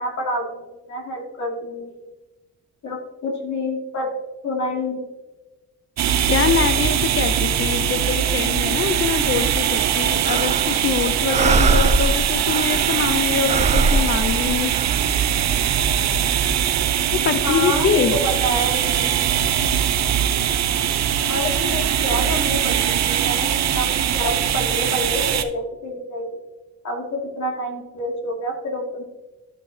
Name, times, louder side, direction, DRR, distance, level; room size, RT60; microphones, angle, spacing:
voice 1, 0.0-2.0 2.8-4.1 4.4-5.1 17.4-19.3 21.3-26.3 26.8-29.0, left 1 dB, 65° left, 0 dB, 2.4 m, -28 dB
sound 1, 6.0-25.4, right 9 dB, 60° right, 0.7 m, -21 dB
voice 2, 6.3-14.7 17.1-18.1, left 7 dB, 45° left, 8 dB, 0.6 m, -24 dB
sound 2, 10.2-10.9 11.3-13.1 13.5-15.0, right 3 dB, 25° right, 0.4 m, -21 dB
12.5 x 5.4 x 2.8 m, 1.1 s
cardioid pair, 90°, 30 cm